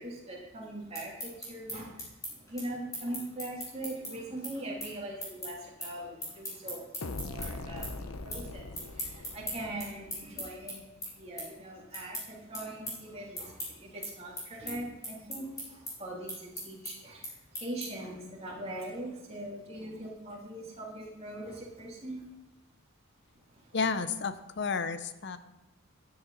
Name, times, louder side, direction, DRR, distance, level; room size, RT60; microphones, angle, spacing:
voice 1, 0.0-10.9 11.1-22.2 23.3-23.8, right 1 dB, 30° right, -4 dB, 3.0 m, -41 dB
sound 1, 0.7-7.5 7.8-8.4 8.7-18.1, equal, 15° left, 4.4 m, -40 dB
sound 2, 7.0-10.7, left 2 dB, 90° left, 0.8 m, -41 dB
voice 2, 23.7-25.4, left 5 dB, 55° left, 12 dB, 0.7 m, -31 dB
13.0 x 9.9 x 4.1 m, 0.93 s
head